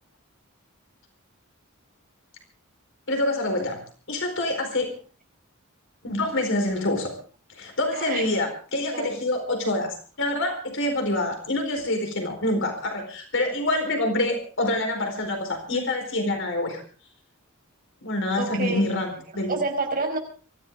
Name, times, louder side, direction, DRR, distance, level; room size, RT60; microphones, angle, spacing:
voice 1, 3.1-3.8 4.1-4.9 6.0-7.1 7.5-16.8 18.0-19.6, left 1 dB, 65° left, 4 dB, 4.4 m, -26 dB
voice 2, 7.9-8.2 8.9-9.2 18.4-18.9 19.3-20.2, right 3 dB, 45° right, 3 dB, 5.3 m, -28 dB
24.0 x 15.0 x 3.7 m, 0.39 s
head